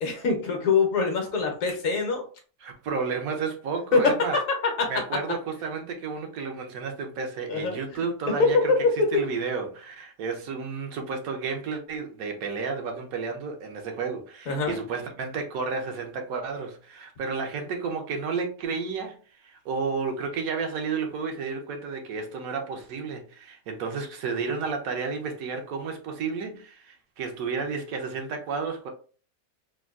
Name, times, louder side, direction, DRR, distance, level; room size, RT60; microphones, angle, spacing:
voice 1, 0.0-2.3 3.9-4.4 4.8-4.9 7.5-7.8 8.3-8.5 9.1-9.2 14.5-14.8, left 4 dB, 65° left, 1.1 m, -24 dB
voice 2, 2.6-4.4 4.9-8.7 9.1-28.9, right 5 dB, 75° right, 1.0 m, -32 dB
3.5 x 2.2 x 2.3 m
omnidirectional pair, 1.6 m